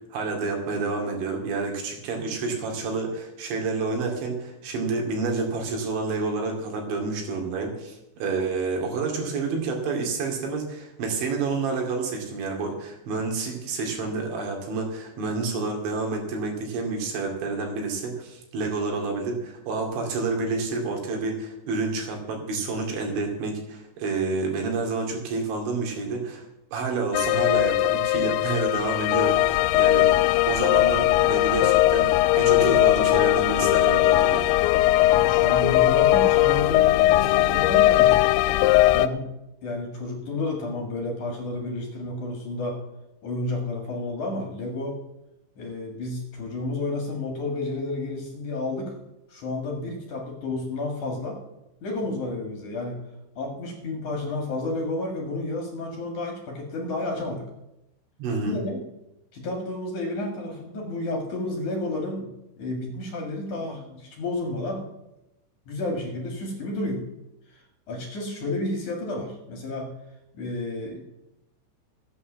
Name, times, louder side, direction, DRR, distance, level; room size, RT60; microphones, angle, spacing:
voice 1, 0.1-26.5 26.7-34.5 58.2-58.6, right 3 dB, 80° right, 1 dB, 4.8 m, -29 dB
sound 1, 27.1-39.1, left 16 dB, 85° left, 2.8 m, -19 dB
voice 2, 35.1-38.3 38.9-39.3 39.6-42.8 43.2-45.0 45.6-49.0 49.3-51.4 51.8-53.0 53.4-57.4 58.5-58.8 59.3-62.3 62.6-64.9 65.7-67.0 67.5-67.6 67.9-69.9 70.3-71.0, left 2 dB, 55° left, 2 dB, 2.7 m, -31 dB
14.0 x 8.8 x 7.4 m, 0.90 s
omnidirectional pair, 5.3 m